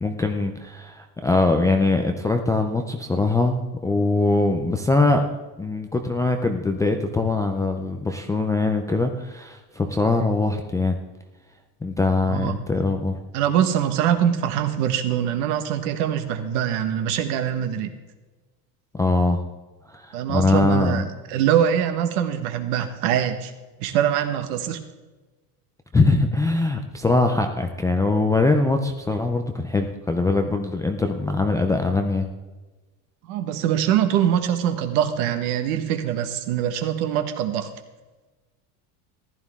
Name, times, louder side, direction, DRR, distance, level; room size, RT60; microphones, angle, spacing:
voice 1, 0.0-5.2 5.6-11.0 11.8-13.2 18.9-19.4 19.9-21.1 25.9-32.3, left 3 dB, 10° left, 3 dB, 0.3 m, -22 dB
voice 2, 12.3-12.6 13.3-17.9 20.1-21.0 21.3-23.5 23.8-24.8 33.3-37.7, right 10 dB, 75° right, 8 dB, 1.5 m, -23 dB
15.0 x 11.0 x 3.6 m, 1.2 s
cardioid pair, 150°, 46 cm